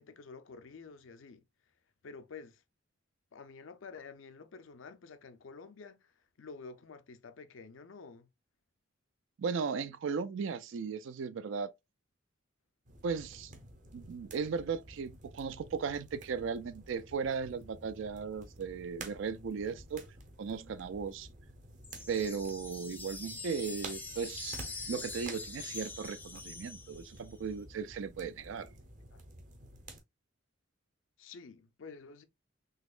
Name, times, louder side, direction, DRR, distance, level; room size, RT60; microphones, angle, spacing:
voice 1, 0.0-1.4 2.0-2.6 3.3-8.3 31.2-32.2, left 4 dB, 80° left, 0.5 m, -50 dB
voice 2, 9.4-11.7 13.0-13.5 13.9-20.1 20.4-21.3 22.1-24.6 24.9-28.7, right 5 dB, 70° right, 0.4 m, -36 dB
sound 1, 12.9-30.0, right 2 dB, 40° right, 0.8 m, -51 dB
sound 2, 21.8-27.3, left 4 dB, 10° left, 0.4 m, -44 dB
4.0 x 2.8 x 2.4 m
head